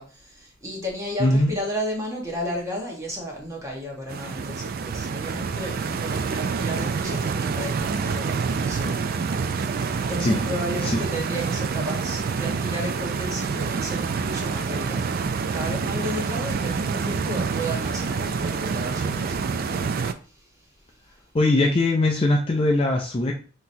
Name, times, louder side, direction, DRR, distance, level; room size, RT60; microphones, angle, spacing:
voice 1, 0.0-9.7 10.1-19.9 20.3-20.5, equal, 15° right, -2 dB, 1.3 m, -33 dB
voice 2, 1.2-1.5 10.2-10.4 10.8-11.0 21.3-23.3, left 2 dB, 25° left, 2 dB, 0.4 m, -21 dB
Stream, 4.1-20.1, right 5 dB, 45° right, 0.3 m, -27 dB
5.8 x 3.0 x 2.7 m, 0.39 s
head